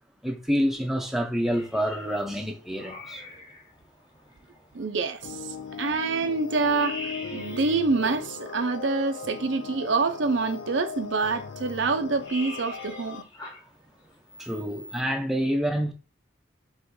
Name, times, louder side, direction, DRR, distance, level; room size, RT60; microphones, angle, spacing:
voice 1, 0.2-3.2 14.4-15.9, equal, ahead, 0.6 m, -27 dB
sound 1, 1.5-15.0, left 2 dB, 20° left, 1.2 m, -46 dB
voice 2, 4.7-13.3, right 4 dB, 75° right, 0.7 m, -27 dB
sound 2, 5.2-13.2, left 5 dB, 85° left, 0.5 m, -38 dB
3.7 x 3.1 x 4.7 m
head